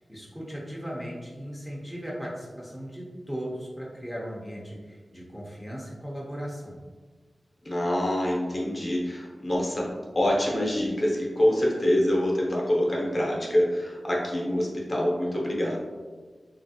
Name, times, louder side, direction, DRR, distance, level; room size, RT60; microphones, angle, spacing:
voice 1, 0.1-6.8, equal, ahead, -4 dB, 0.6 m, -37 dB
voice 2, 7.6-15.8, left 1 dB, 40° left, -3 dB, 0.7 m, -25 dB
2.9 x 2.5 x 2.7 m, 1.4 s
wide cardioid pair, 75°, 0 cm